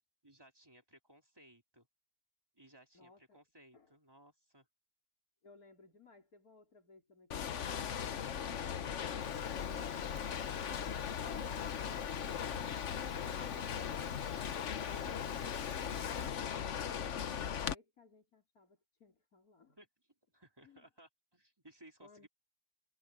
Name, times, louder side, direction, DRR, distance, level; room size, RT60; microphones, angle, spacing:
voice 1, 0.2-1.9 2.6-4.7 19.8-19.9 20.3-22.3, right 1 dB, 15° right, 3.3 m, -61 dB
voice 2, 2.9-3.4 3.7-3.9 5.4-8.8 15.6-19.8 20.6-20.8 22.0-22.3, left 3 dB, 90° left, 4.6 m, -62 dB
sound 1, 7.3-17.8, left 8 dB, 60° left, 1.2 m, -38 dB
Fire, 9.2-16.3, right 3 dB, 85° right, 4.0 m, -57 dB
omnidirectional pair, 1.5 m